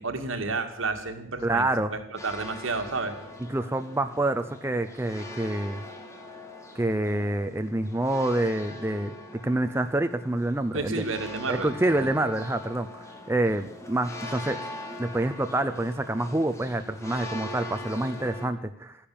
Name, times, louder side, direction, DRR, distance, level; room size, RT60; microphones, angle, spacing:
voice 1, 0.0-1.6 1.9-3.2 10.7-11.7 12.0-12.1, right 3 dB, 75° right, 5 dB, 2.0 m, -31 dB
voice 2, 1.4-1.9 3.5-5.8 6.8-9.1 9.4-11.0 11.5-14.6 15.0-19.0, right 1 dB, 10° right, 8 dB, 0.5 m, -27 dB
sound 1, 2.2-18.5, left 1 dB, 15° left, 1.7 m, -42 dB
13.5 x 10.5 x 8.7 m, 0.73 s
head